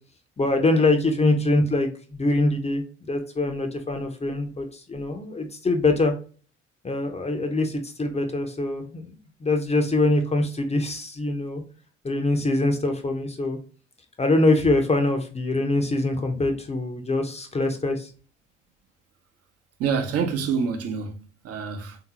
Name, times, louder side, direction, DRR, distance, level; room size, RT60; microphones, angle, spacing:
voice 1, 0.4-2.8 3.1-6.1 6.8-9.1 9.4-11.6 12.0-13.6 14.2-18.1, left 2 dB, 20° left, 0.7 m, -23 dB
voice 2, 19.8-22.0, right 6 dB, 45° right, 0.9 m, -27 dB
3.6 x 2.8 x 2.9 m
figure-of-eight pair, 50°, 35 cm